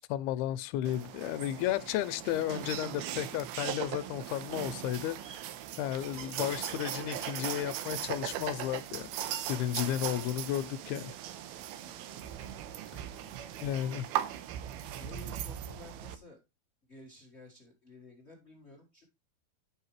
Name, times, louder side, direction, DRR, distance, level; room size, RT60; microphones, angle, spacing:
voice 1, 0.1-5.4 5.8-9.1 9.5-11.1 13.6-14.1, left 12 dB, 85° left, 2.6 m, -33 dB
sound 1, 0.8-16.1, right 11 dB, 85° right, 2.8 m, -39 dB
voice 2, 11.8-12.3 13.1-13.7 15.0-16.4 16.9-19.0, left 2 dB, 50° left, 0.8 m, -53 dB
11.0 x 5.6 x 3.1 m
omnidirectional pair, 4.5 m